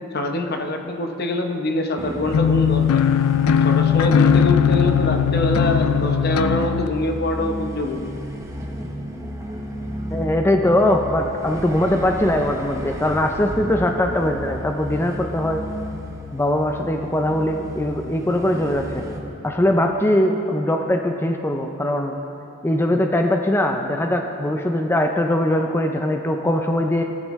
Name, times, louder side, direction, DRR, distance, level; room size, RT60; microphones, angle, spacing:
voice 1, 0.1-3.1 3.6-8.1, left 1 dB, 45° left, 4 dB, 0.8 m, -24 dB
sound 1, 2.0-19.2, equal, 15° right, 0.8 m, -32 dB
sound 2, 2.3-6.9, left 8 dB, 85° left, 0.4 m, -18 dB
voice 2, 10.1-15.6 16.3-19.0 19.4-22.2 22.6-27.0, left 1 dB, 10° left, 3 dB, 0.4 m, -21 dB
16.5 x 11.5 x 3.1 m, 2.9 s
head